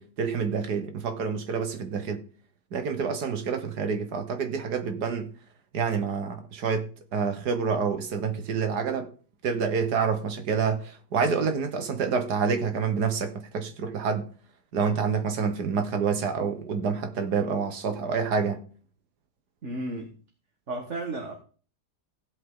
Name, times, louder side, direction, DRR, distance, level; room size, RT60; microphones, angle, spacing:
voice 1, 0.0-2.2 2.7-5.3 5.7-9.1 9.4-14.3 14.7-18.6, right 5 dB, 85° right, 1.9 m, -28 dB
voice 2, 19.6-20.1 20.7-21.3, right 2 dB, 50° right, 1.8 m, -33 dB
15.0 x 8.2 x 3.8 m
omnidirectional pair, 1.7 m